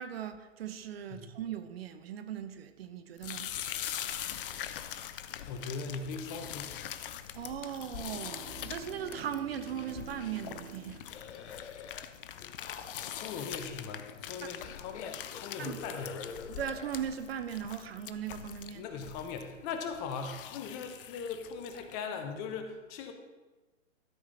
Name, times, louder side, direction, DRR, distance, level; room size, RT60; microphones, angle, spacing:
voice 1, 0.0-3.5 7.3-11.0 15.6-15.8 16.5-18.8, right 9 dB, 50° right, 10 dB, 0.8 m, -38 dB
sound 1, 3.2-21.9, left 10 dB, 45° left, 0.6 m, -43 dB
voice 2, 5.4-6.7 13.1-16.3 18.7-23.1, left 5 dB, 25° left, 6 dB, 0.9 m, -40 dB
Bowed string instrument, 7.6-11.9, right 10 dB, 80° right, 0.8 m, -50 dB
sound 2, 11.1-12.0 12.3-14.1 14.6-16.9, left 6 dB, 60° left, 0.9 m, -46 dB
13.0 x 4.9 x 5.6 m, 1.2 s
hypercardioid pair, 125°, 39 cm